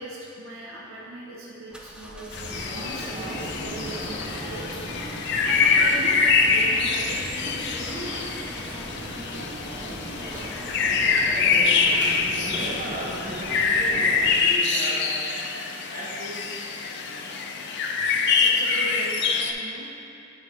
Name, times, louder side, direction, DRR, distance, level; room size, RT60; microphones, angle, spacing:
voice 1, 0.0-4.6 5.4-7.2 8.4-8.9 11.3-11.4 11.9-12.0 18.4-19.9, right 1 dB, 80° right, -4 dB, 0.8 m, -38 dB
sound 1, 1.7-11.9, equal, 5° right, 0.4 m, -44 dB
sound 2, 2.3-19.5, left 5 dB, 60° left, 0.4 m, -25 dB
sound 3, 2.5-14.3, right 1 dB, 20° right, 0.8 m, -36 dB
voice 2, 12.8-15.3 15.9-17.4, equal, 45° right, -6 dB, 1.2 m, -37 dB
8.2 x 4.6 x 3.2 m, 2.7 s
head